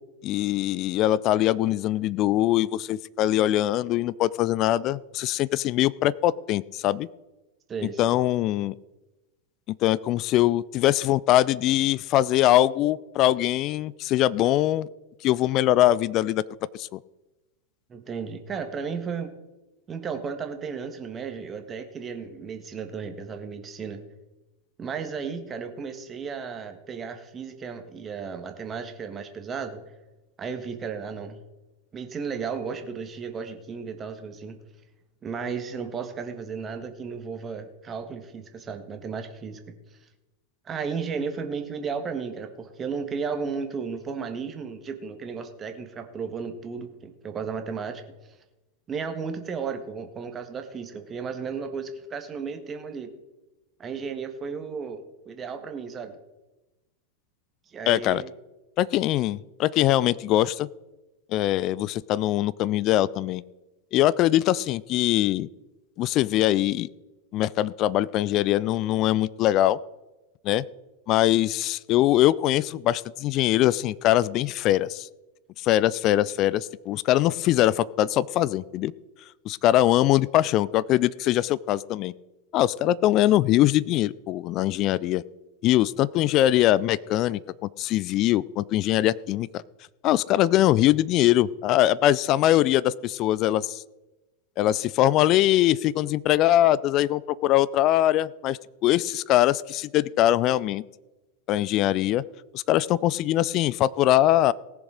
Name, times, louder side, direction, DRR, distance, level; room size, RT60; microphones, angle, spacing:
voice 1, 0.2-7.1 8.0-8.7 9.8-14.9 15.2-16.4 16.7-17.0 57.9-58.2 58.8-60.7 61.3-63.4 63.9-65.5 66.0-66.9 67.3-69.8 70.4-70.6 71.1-75.1 75.6-78.9 79.5-82.1 82.5-85.2 85.6-89.6 90.0-93.8 94.6-100.8 101.5-102.2 102.5-104.5, left 14 dB, 35° left, 20 dB, 0.4 m, -22 dB
voice 2, 7.7-8.2 17.9-19.3 19.9-24.0 24.8-29.8 30.4-31.4 31.9-34.6 35.2-39.7 40.6-48.0 48.9-53.1 53.8-56.2 57.7-58.3 79.7-79.9, right 5 dB, 25° right, 7 dB, 1.6 m, -34 dB
18.5 x 7.0 x 5.0 m, 1.1 s
figure-of-eight pair, 90°, 0 cm